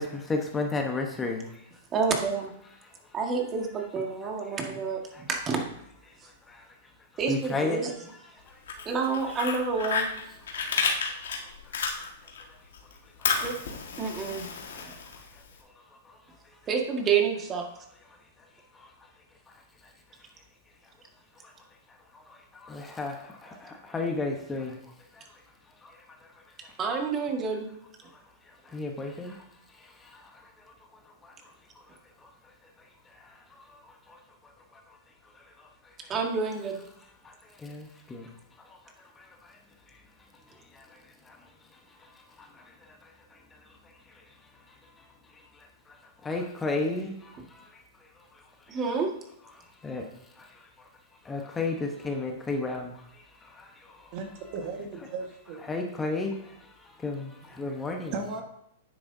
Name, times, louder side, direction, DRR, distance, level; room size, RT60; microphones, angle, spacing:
voice 1, 0.0-1.6 5.1-5.2 6.5-6.6 7.3-7.8 8.5-8.6 10.5-10.8 13.2-13.4 16.1-16.2 18.7-18.9 21.4-21.5 22.1-24.8 25.1-25.2 25.8-26.0 26.6-26.7 28.6-29.4 29.7-30.4 31.2-31.3 32.2-32.3 33.1-33.4 33.7-34.2 35.3-35.7 37.2-38.3 38.6-38.8 39.2-39.6 40.7-41.4 42.0-42.1 42.4-42.7 43.0-43.4 45.5-46.0 46.2-47.7 49.8-50.1 50.4-50.7 51.2-54.1 55.6-58.1, left 3 dB, 15° left, 3 dB, 1.0 m, -34 dB
voice 2, 1.9-2.5 3.1-5.6 7.2-8.0 8.9-10.1 13.4-14.5 14.9-15.0 16.7-17.7 26.8-27.7 36.1-36.8 48.7-49.1, right 5 dB, 25° right, 2 dB, 1.7 m, -29 dB
Fire, 8.5-12.4 12.7-15.5, left 5 dB, 80° left, 1.7 m, -31 dB
voice 3, 54.1-55.6 57.5-57.6 58.1-58.4, right 4 dB, 50° right, 4 dB, 1.5 m, -36 dB
9.5 x 7.8 x 2.7 m, 0.74 s
hypercardioid pair, 130°, 0 cm